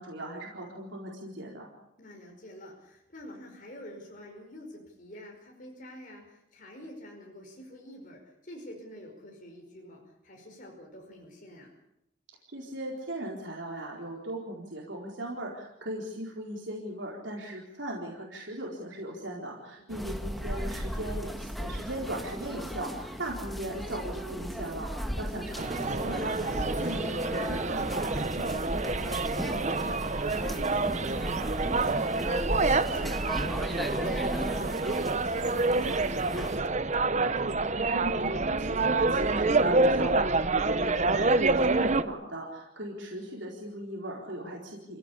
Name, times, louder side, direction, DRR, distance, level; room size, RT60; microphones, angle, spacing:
voice 1, 0.0-1.7 12.5-28.9 37.9-45.0, right 1 dB, 65° right, -2 dB, 4.4 m, -38 dB
voice 2, 2.0-11.8 19.8-20.1 25.0-25.3 29.2-37.2, equal, 40° left, 0 dB, 5.2 m, -47 dB
sound 1, 19.9-36.6, equal, ahead, 1.5 m, -36 dB
sound 2, 25.6-42.0, right 3 dB, 35° right, 0.9 m, -27 dB
28.0 x 16.5 x 8.6 m, 0.86 s
head